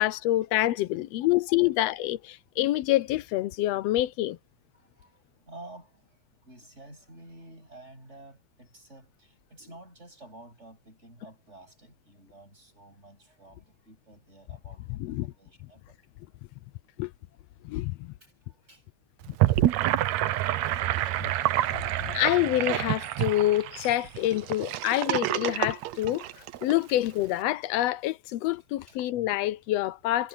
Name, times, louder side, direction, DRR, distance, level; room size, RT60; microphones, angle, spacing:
voice 1, 0.0-4.4 15.0-15.3 17.0-17.1 17.6-18.1 19.3-19.4 20.7-21.3 21.7-26.2 26.6-30.3, left 15 dB, 75° left, 1.5 m, -27 dB
voice 2, 1.1-1.8 4.7-6.2 6.4-16.0 18.2-18.3 18.7-18.8 25.5-25.6 26.9-27.0 28.9-29.0 30.2-30.3, right 2 dB, 20° right, 8.4 m, -51 dB
Gurgling / Sink (filling or washing), 19.2-26.7, right 14 dB, 75° right, 2.0 m, -27 dB
omnidirectional pair, 3.4 m